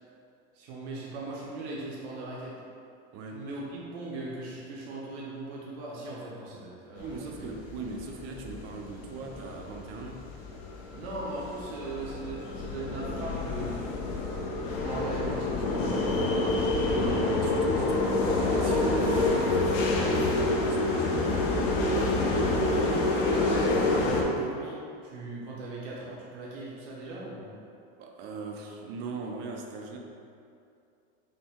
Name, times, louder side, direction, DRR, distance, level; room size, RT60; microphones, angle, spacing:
voice 1, 0.5-2.5 3.3-7.4 10.9-13.8 14.8-17.3 22.6-27.5, right 2 dB, 75° right, -5 dB, 0.9 m, -39 dB
voice 2, 3.1-3.5 7.0-10.3 17.0-21.6 28.0-30.0, right 4 dB, 40° right, 2 dB, 0.5 m, -39 dB
sound 1, 7.0-24.2, left 2 dB, 55° left, 0.7 m, -27 dB
5.3 x 2.2 x 3.5 m, 2.5 s
supercardioid pair, 155°, 32 cm